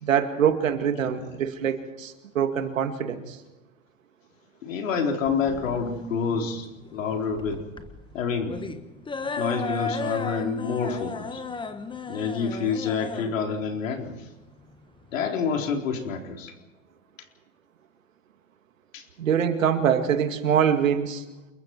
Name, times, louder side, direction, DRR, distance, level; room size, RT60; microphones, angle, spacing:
voice 1, 0.0-3.4 19.2-21.2, right 8 dB, 90° right, 7 dB, 2.3 m, -24 dB
voice 2, 4.6-6.7 6.9-7.6 8.1-8.7 9.4-11.4 12.1-14.1 15.1-16.5 18.9-19.0, left 5 dB, 85° left, 3 dB, 4.0 m, -28 dB
sound 1, 5.3-15.3, left 4 dB, 10° left, 1.5 m, -35 dB
28.5 x 22.0 x 4.6 m, 1.1 s
hypercardioid pair, 110°, 38 cm